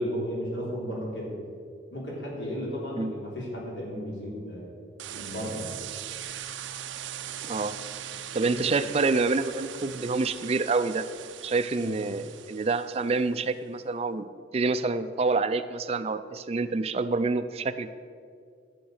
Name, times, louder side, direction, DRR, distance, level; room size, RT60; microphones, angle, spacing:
voice 1, 0.0-1.3 1.9-4.7 5.1-5.8 8.5-8.7 11.8-11.9, equal, 75° left, -3 dB, 3.4 m, -34 dB
sound 1, 5.0-13.2, right 10 dB, 90° right, 0.5 m, -40 dB
voice 2, 7.4-7.8 8.3-11.1 11.4-14.3 14.5-17.9, right 3 dB, 35° right, 12 dB, 0.4 m, -27 dB
12.0 x 7.2 x 6.5 m, 2.3 s
head